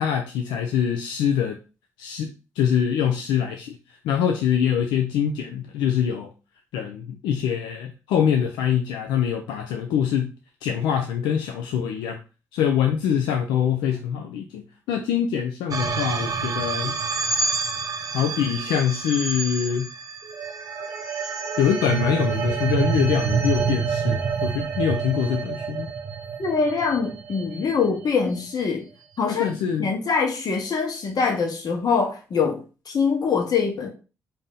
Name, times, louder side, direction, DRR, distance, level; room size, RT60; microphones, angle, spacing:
voice 1, 0.0-1.6 2.0-6.3 6.7-10.3 10.6-12.2 12.5-17.0 18.1-19.9 21.6-25.9 29.3-29.9, left 8 dB, 80° left, 5 dB, 0.4 m, -24 dB
sound 1, 15.7-28.1, right 5 dB, 50° right, 0.8 m, -27 dB
voice 2, 26.4-28.8 29.2-29.5 29.8-33.9, left 5 dB, 60° left, 2 dB, 1.1 m, -24 dB
4.0 x 2.6 x 3.7 m, 0.32 s
hypercardioid pair, 45°, 8 cm